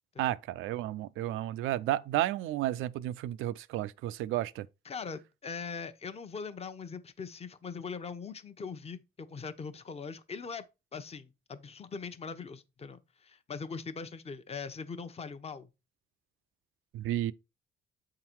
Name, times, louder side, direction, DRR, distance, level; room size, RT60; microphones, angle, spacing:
voice 1, 0.2-4.7 16.9-17.3, right 14 dB, 90° right, 0.4 m, -32 dB
voice 2, 4.8-10.6 10.9-15.7, left 5 dB, 30° left, 0.8 m, -41 dB
7.8 x 3.8 x 4.5 m
cardioid pair, 90°, 20 cm